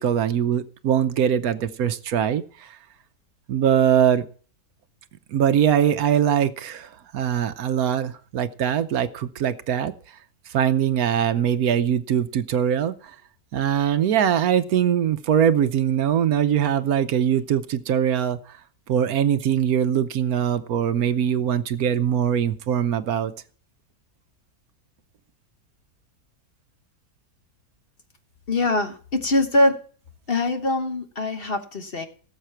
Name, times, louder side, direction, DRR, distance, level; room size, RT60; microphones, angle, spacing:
voice 1, 0.0-2.8 3.5-4.2 5.3-9.9 10.5-12.9 13.5-18.4 18.9-23.3, right 9 dB, 70° right, 11 dB, 1.2 m, -22 dB
voice 2, 28.5-29.8 30.3-32.1, left 2 dB, 40° left, 6 dB, 1.2 m, -23 dB
17.5 x 7.4 x 4.5 m, 0.43 s
omnidirectional pair, 1.7 m